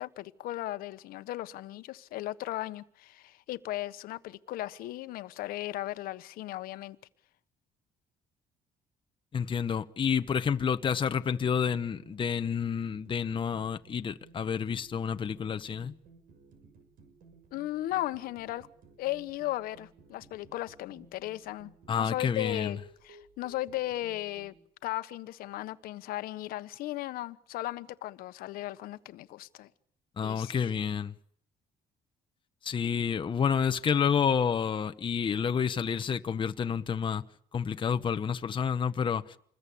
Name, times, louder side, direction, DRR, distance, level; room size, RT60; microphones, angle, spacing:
voice 1, 0.0-7.0 17.5-18.7 19.0-24.5 24.8-29.7 30.2-30.8, left 15 dB, 85° left, 1.3 m, -36 dB
voice 2, 9.3-15.9 21.9-22.7 30.2-31.1 32.6-37.2 37.5-39.4, left 7 dB, 35° left, 1.0 m, -29 dB
sound 1, 11.7-24.5, right 4 dB, 70° right, 6.5 m, -57 dB
28.0 x 21.0 x 8.6 m
cardioid pair, 115°, 15 cm